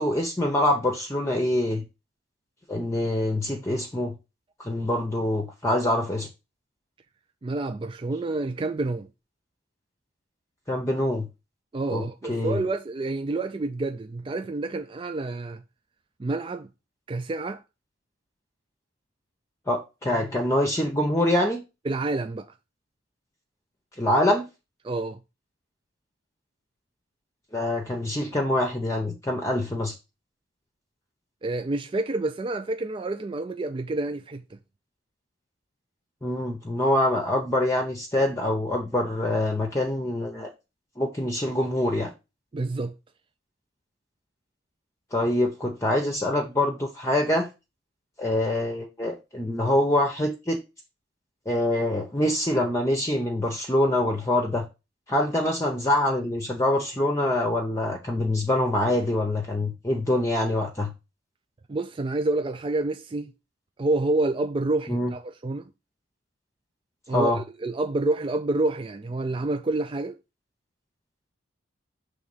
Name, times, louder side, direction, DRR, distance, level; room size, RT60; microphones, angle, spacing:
voice 1, 0.0-1.8 2.7-4.1 4.6-6.3 10.7-11.3 11.9-12.6 19.7-21.6 24.0-24.5 27.5-29.9 36.2-40.5 41.0-42.1 45.1-47.5 48.2-50.6 51.5-54.7 55.1-60.9 64.9-65.1 67.1-67.4, left 1 dB, 15° left, 0.8 m, -25 dB
voice 2, 7.4-9.1 11.7-15.6 16.2-16.7 17.1-17.6 21.9-22.5 24.8-25.2 31.4-34.6 42.5-42.9 61.7-63.3 63.8-65.7 67.1-70.2, right 2 dB, 25° right, 0.3 m, -28 dB
6.4 x 3.4 x 5.5 m
head